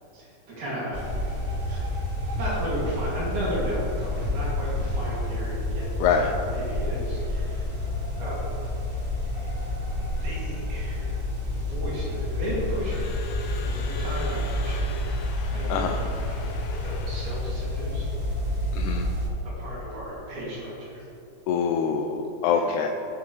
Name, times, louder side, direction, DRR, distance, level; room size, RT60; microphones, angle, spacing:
voice 1, 0.1-1.1 1.7-1.8 2.4-7.7 8.2-8.4 10.2-11.2 11.5-16.2 16.8-18.1 19.6-21.0 22.5-22.7, equal, 80° right, -7 dB, 4.2 m, -35 dB
sound 1, 0.9-19.3, left 1 dB, 25° right, 2.6 m, -29 dB
voice 2, 6.0-6.3 15.7-16.0 18.7-19.1 21.5-22.9, left 6 dB, 85° left, 3 dB, 2.0 m, -24 dB
Crowd / Alarm, 12.3-17.9, left 2 dB, 65° left, 1.7 m, -42 dB
19.0 x 6.7 x 3.3 m, 3.0 s
omnidirectional pair, 3.4 m